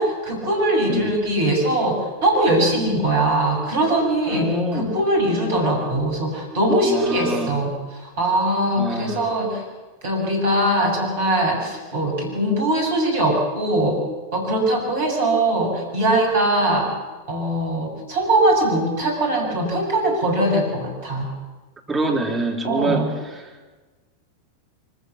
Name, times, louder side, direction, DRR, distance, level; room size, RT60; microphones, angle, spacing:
voice 1, 0.0-9.6 10.0-14.0 14.3-16.9 17.3-21.3 22.6-23.1, right 1 dB, 55° right, 1 dB, 6.9 m, -21 dB
voice 2, 4.3-4.9 6.9-7.6 8.8-9.3 21.9-23.1 23.3-23.5, right 2 dB, 10° right, -1 dB, 3.4 m, -25 dB
24.5 x 15.5 x 7.3 m, 1.3 s
figure-of-eight pair, 90°, 0 cm